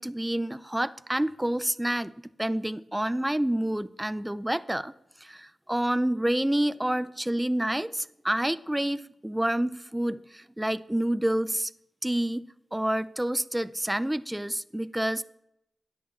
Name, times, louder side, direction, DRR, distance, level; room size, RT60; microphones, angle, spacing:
voice 1, 0.0-2.1 2.4-4.9 5.2-11.7 12.0-12.5 12.7-15.2, right 1 dB, 10° right, 15 dB, 0.5 m, -28 dB
10.0 x 8.4 x 7.2 m, 0.81 s
cardioid pair, 50°, 0 cm